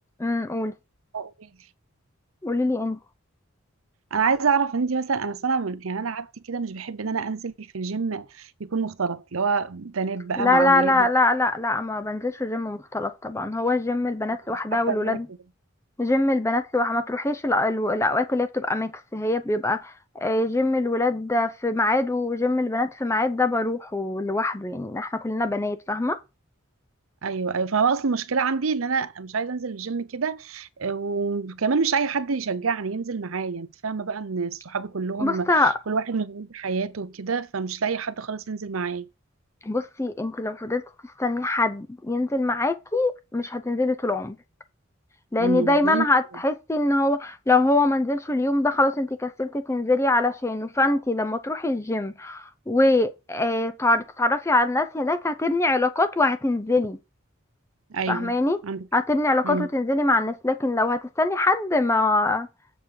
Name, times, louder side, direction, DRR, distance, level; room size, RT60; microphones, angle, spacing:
voice 1, 0.2-0.7 2.4-3.0 10.4-15.3 16.0-19.9 20.2-26.2 35.2-35.7 39.6-40.8 41.2-44.4 45.3-57.0 58.1-58.6 58.9-62.5, left 2 dB, 15° left, 0.6 m, -23 dB
voice 2, 1.1-1.5 4.1-11.1 14.7-15.2 27.2-35.5 35.9-39.1 45.4-46.1 57.9-58.3 58.6-58.9 59.4-59.7, right 5 dB, 80° right, 0.7 m, -27 dB
7.4 x 6.7 x 4.6 m
head